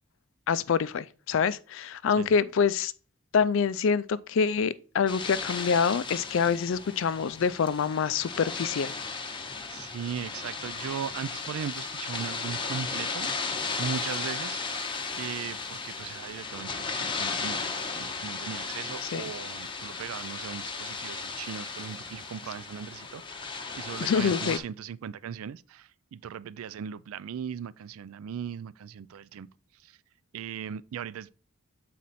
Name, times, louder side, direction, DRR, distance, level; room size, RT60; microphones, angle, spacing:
voice 1, 0.5-2.9 3.3-8.9 19.1-19.2 24.0-24.6, left 6 dB, 60° left, 0.4 m, -26 dB
sound 1, 5.1-24.6, left 4 dB, 20° left, 0.7 m, -35 dB
voice 2, 9.7-14.6 15.2-29.5 29.7-30.0 30.3-31.3, right 7 dB, 75° right, 0.3 m, -38 dB
7.7 x 4.2 x 4.1 m
head